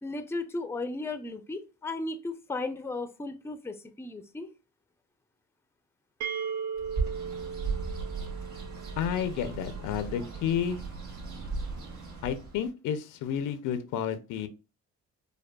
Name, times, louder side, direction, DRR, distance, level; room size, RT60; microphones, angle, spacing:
voice 1, 0.0-4.5, left 2 dB, 10° left, 9 dB, 0.4 m, -35 dB
sound 1, 6.2-9.9, right 6 dB, 60° right, 0.5 m, -38 dB
Bird, 6.8-12.7, right 4 dB, 80° right, 1.5 m, -36 dB
voice 2, 9.0-10.8 12.2-14.5, left 8 dB, 90° left, 11 dB, 0.6 m, -31 dB
4.9 x 2.3 x 2.2 m, 0.31 s
cardioid pair, 90°, 30 cm